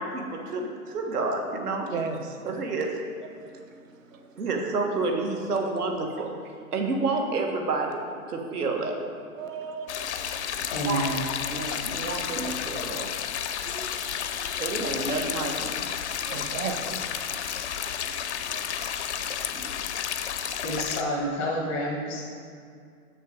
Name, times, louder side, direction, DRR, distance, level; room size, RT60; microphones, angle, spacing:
voice 1, 0.0-1.9 2.4-3.0 4.4-6.3 6.7-9.0 10.9-11.0 11.5-13.1 14.6-15.7 19.5-19.9, right 3 dB, 80° right, 2 dB, 1.5 m, -29 dB
voice 2, 1.9-2.4 3.3-3.5 4.1-4.2 9.4-10.2 10.6-10.7 13.7-13.9 14.4-14.6 16.1-17.0 18.0-18.1 18.5-18.7, right 5 dB, 60° right, 5 dB, 1.0 m, -36 dB
sound 1, 9.9-21.0, left 8 dB, 50° left, 0.5 m, -31 dB
voice 3, 10.7-11.2 20.6-22.2, equal, 5° left, -4 dB, 0.5 m, -29 dB
6.9 x 6.5 x 5.2 m, 2.3 s
hypercardioid pair, 155°, 45 cm